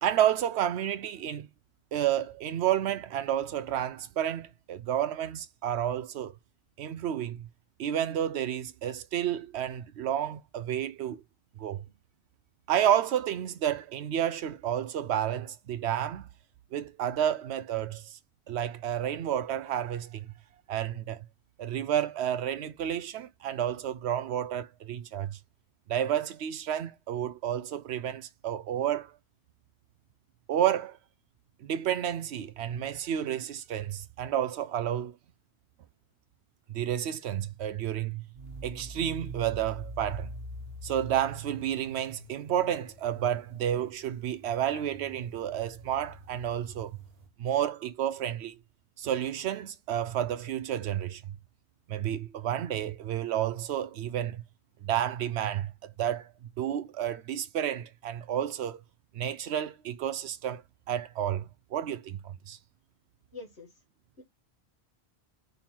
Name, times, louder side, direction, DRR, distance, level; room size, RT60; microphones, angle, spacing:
voice 1, 0.0-1.5 1.9-6.4 6.8-7.4 7.8-11.2 11.6-11.8 12.7-16.2 16.7-18.2 18.5-20.3 20.7-21.2 21.6-25.4 25.9-29.1 30.5-31.0 31.6-35.2 36.7-38.2 38.6-40.3 40.8-47.0 47.4-48.6 49.0-51.2 51.9-54.4 54.8-56.3 56.6-58.8 59.1-60.6 60.9-62.6, right 10 dB, 85° right, 0.9 m, -30 dB
sound 1, 38.4-47.3, right 2 dB, 65° right, 1.4 m, -44 dB
voice 2, 63.3-63.8 64.2-64.3, left 3 dB, 75° left, 2.0 m, -45 dB
5.3 x 4.4 x 5.7 m
omnidirectional pair, 1.1 m